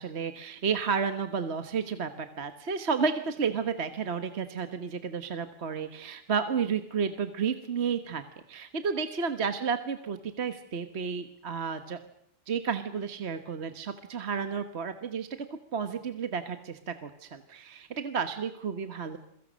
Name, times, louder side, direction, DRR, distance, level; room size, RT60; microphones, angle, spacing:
voice 1, 0.0-8.2 8.5-12.0 12.5-15.3 15.7-19.2, right 6 dB, 40° right, 9 dB, 1.3 m, -32 dB
29.0 x 23.0 x 6.3 m, 0.70 s
omnidirectional pair, 2.0 m